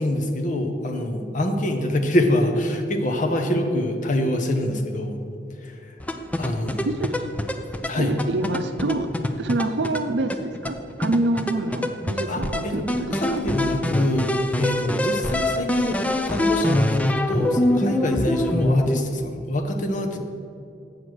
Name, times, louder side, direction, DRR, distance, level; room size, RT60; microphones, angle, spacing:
voice 1, 0.0-5.2 5.6-6.0 6.4-6.9 7.9-8.1 12.3-16.0 16.3-20.2, left 1 dB, 45° left, 4 dB, 0.9 m, -25 dB
sound 1, 6.0-19.0, left 1 dB, 10° left, 0.4 m, -25 dB
voice 2, 6.8-7.3 7.9-9.1 9.4-13.4, right 2 dB, 65° right, 9 dB, 0.6 m, -26 dB
8.0 x 6.7 x 6.1 m, 2.6 s
head